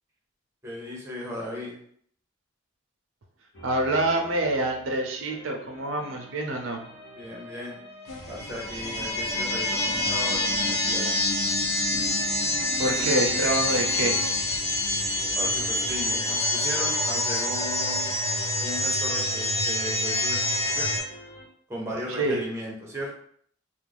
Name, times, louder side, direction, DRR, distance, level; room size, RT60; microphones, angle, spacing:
voice 1, 0.6-1.8 7.1-7.8 8.3-11.2 15.3-18.0 18.6-21.0 21.7-23.2, equal, 15° right, -3 dB, 0.6 m, -36 dB
sound 1, 3.5-21.5, equal, 65° left, 1.0 m, -48 dB
voice 2, 3.6-6.8 12.8-14.2 22.1-22.4, right 2 dB, 85° right, 2 dB, 0.5 m, -26 dB
sound 2, 8.1-16.2, left 1 dB, 85° left, 0.5 m, -42 dB
sound 3, 8.2-21.0, left 2 dB, 30° left, 0.9 m, -26 dB
2.4 x 2.0 x 3.3 m, 0.63 s
head